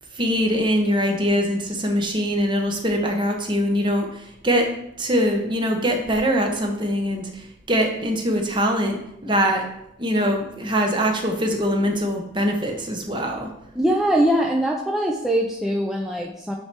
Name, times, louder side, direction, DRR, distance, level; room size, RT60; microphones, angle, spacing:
voice 1, 0.1-4.7 5.0-9.7 10.0-13.5, equal, 25° right, 3 dB, 0.9 m, -23 dB
voice 2, 13.8-16.5, right 1 dB, ahead, -2 dB, 0.5 m, -22 dB
8.6 x 3.4 x 4.4 m, 0.81 s
head